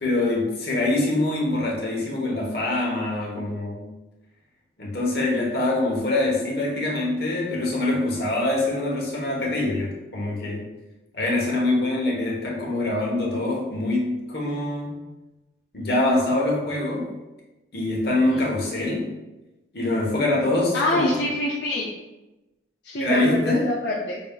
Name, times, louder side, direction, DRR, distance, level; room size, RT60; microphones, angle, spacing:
voice 1, 0.0-3.9 4.8-10.7 11.1-15.0 15.7-17.1 17.7-19.1 19.7-21.2 23.0-23.7, left 2 dB, 60° left, -2 dB, 1.1 m, -24 dB
voice 2, 18.1-18.4 20.7-21.9 22.8-24.2, left 1 dB, 80° left, -3 dB, 0.5 m, -26 dB
5.8 x 3.6 x 2.3 m, 1.0 s
head